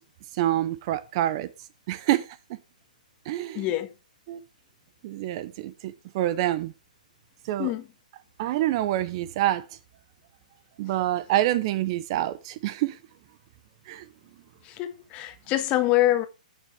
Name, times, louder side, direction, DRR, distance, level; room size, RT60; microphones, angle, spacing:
voice 1, 0.3-1.5 1.9-2.3 3.3-3.7 4.3-4.4 5.0-6.7 7.4-7.7 8.4-9.6 10.8-13.0 13.9-14.0, right 14 dB, 40° right, 0.7 m, -26 dB
voice 2, 3.5-3.9 7.6-7.9 14.6-16.3, left 15 dB, 25° left, 1.4 m, -25 dB
16.5 x 6.5 x 3.3 m
hypercardioid pair, 145°, 5 cm